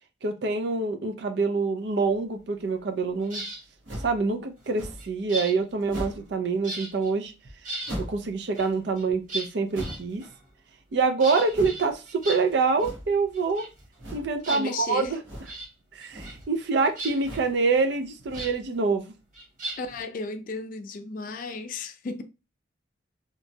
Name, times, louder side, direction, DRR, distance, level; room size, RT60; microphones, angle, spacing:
voice 1, 0.2-3.4 4.0-7.3 8.0-10.2 10.9-13.6 14.1-15.2 15.9-19.0, right 4 dB, 60° right, 0.4 m, -26 dB
sound 1, 3.2-3.6 4.6-6.4 6.6-7.1 7.4-8.0 8.5-10.5 11.2-12.9 13.1-14.1 14.4-15.1 15.4-15.7 16.0-16.5 16.8-18.5 19.3-20.0, right 1 dB, 45° right, 1.0 m, -38 dB
sound 2, 3.8-4.2 4.7-5.1 5.9-6.3 7.8-8.3 9.7-10.2 11.5-11.9 12.7-13.2 14.0-14.4 15.2-15.6 16.0-16.5 17.2-17.6 18.2-18.7, equal, 75° right, 1.2 m, -38 dB
voice 2, 14.5-15.2 19.8-22.2, left 3 dB, 45° left, 0.3 m, -34 dB
2.9 x 2.2 x 2.6 m
head